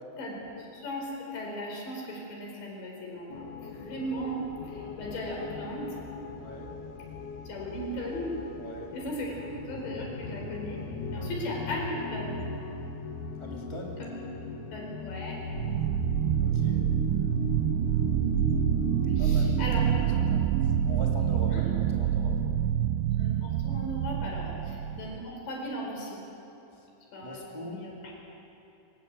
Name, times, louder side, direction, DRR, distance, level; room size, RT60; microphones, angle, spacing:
voice 1, 0.2-6.0 7.4-8.4 8.9-10.8 11.1-12.4 14.0-14.1 14.7-15.4 19.1-20.3 21.4-21.6 23.1-26.2 27.1-27.9, equal, 65° left, -1 dB, 6.8 m, -37 dB
sound 1, 3.3-19.5, left 4 dB, 85° left, 1.7 m, -38 dB
voice 2, 6.3-6.7 8.5-8.9 11.1-11.3 13.4-14.0 16.4-16.8 19.2-22.4 24.5-24.6 26.7-26.9 27.2-27.9, equal, 30° right, -2 dB, 0.5 m, -43 dB
sound 2, 15.5-25.3, right 10 dB, 85° right, 2.4 m, -27 dB
25.0 x 18.5 x 8.2 m, 2.9 s
omnidirectional pair, 5.4 m